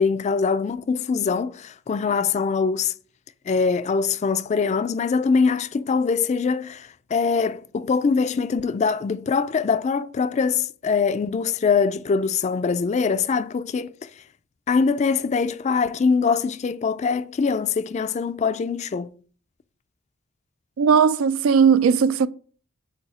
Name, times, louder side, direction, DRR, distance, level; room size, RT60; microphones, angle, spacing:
voice 1, 0.0-2.9 3.5-13.9 14.7-19.1, left 5 dB, 35° left, 0.3 m, -23 dB
voice 2, 20.8-22.3, right 6 dB, 85° right, 0.4 m, -17 dB
8.1 x 2.7 x 4.8 m
head